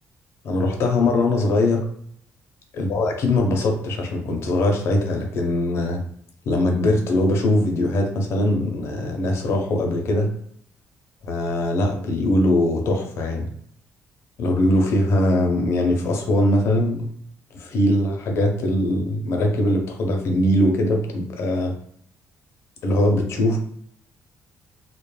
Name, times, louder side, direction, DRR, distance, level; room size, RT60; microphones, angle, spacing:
voice 1, 0.4-1.9 2.7-6.0 6.5-10.3 11.2-13.5 14.4-17.0 17.5-21.7 22.8-23.6, left 1 dB, 55° left, 2 dB, 0.5 m, -21 dB
2.2 x 2.0 x 3.1 m, 0.65 s
cardioid pair, 165°, 5 cm